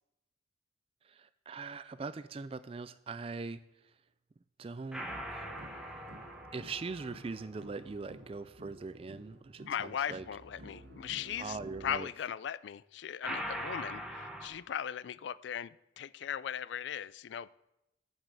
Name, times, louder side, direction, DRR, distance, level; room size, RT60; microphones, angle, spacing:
voice 1, 1.0-3.6 4.6-10.3 11.4-12.1, right 4 dB, 30° right, 0.3 m, -42 dB
sound 1, 4.9-8.3 13.2-14.5, equal, 5° right, 1.0 m, -42 dB
sound 2, 5.1-12.0, right 1 dB, 75° right, 1.4 m, -53 dB
voice 2, 9.7-17.5, left 9 dB, 70° left, 0.3 m, -38 dB
7.4 x 7.2 x 8.1 m
head